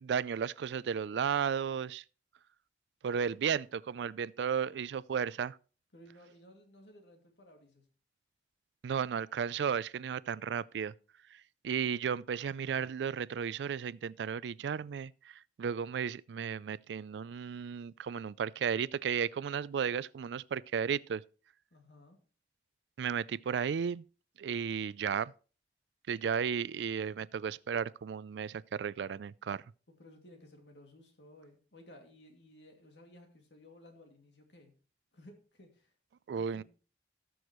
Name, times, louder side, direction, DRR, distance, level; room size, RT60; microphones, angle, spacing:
voice 1, 0.0-2.0 3.0-5.6 8.8-10.9 11.6-21.2 23.0-24.0 24.4-25.3 26.1-29.6 36.3-36.6, right 7 dB, 85° right, 0.3 m, -34 dB
voice 2, 5.9-7.8 21.7-22.2 30.0-34.7 35.1-35.9 36.4-36.6, left 1 dB, 90° left, 2.4 m, -57 dB
18.0 x 6.3 x 3.0 m
head